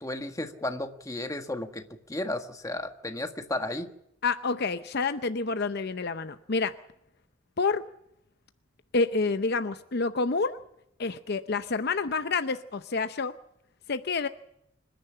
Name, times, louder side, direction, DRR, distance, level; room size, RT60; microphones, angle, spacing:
voice 1, 0.0-1.8 2.1-3.9, left 1 dB, 15° left, 6 dB, 1.6 m, -33 dB
voice 2, 4.2-6.7 7.6-7.8 8.9-10.6 11.0-13.3 13.9-14.3, left 4 dB, 55° left, 10 dB, 0.7 m, -28 dB
26.0 x 10.5 x 9.9 m, 0.79 s
head